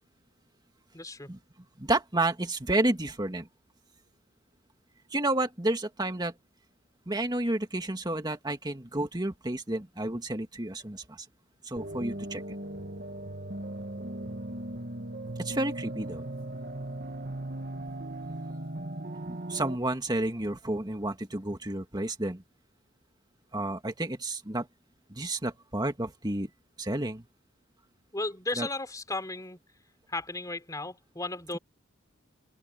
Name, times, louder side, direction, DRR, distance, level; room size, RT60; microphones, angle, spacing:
voice 1, 0.9-1.3 28.1-29.6 30.1-31.6, left 2 dB, 20° left, 3.7 m, -35 dB
voice 2, 1.8-3.5 5.1-6.3 7.1-11.3 11.6-12.4 15.4-16.2 19.3-22.4 23.5-24.7 25.1-26.5 26.8-27.3 28.6-28.7, right 2 dB, 20° right, 2.0 m, -30 dB
sound 1, 11.8-19.8, right 1 dB, 50° right, 1.9 m, -38 dB
open air
head